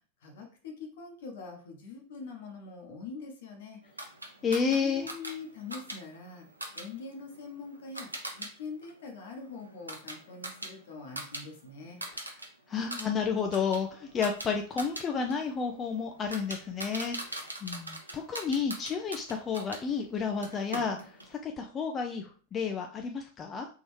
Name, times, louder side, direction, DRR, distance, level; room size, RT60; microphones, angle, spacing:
voice 1, 0.2-3.8 4.7-6.4 6.7-12.0, left 4 dB, 60° left, 2 dB, 1.1 m, -43 dB
sound 1, 4.0-8.5 8.8-11.4 11.7-12.5 12.8-19.8 20.4-21.3, right 1 dB, 80° right, 0.7 m, -42 dB
voice 2, 4.4-5.1 12.0-12.3 12.7-23.7, left 5 dB, 25° left, 4 dB, 0.4 m, -31 dB
3.7 x 3.0 x 3.1 m, 0.39 s
figure-of-eight pair, 90°, 0 cm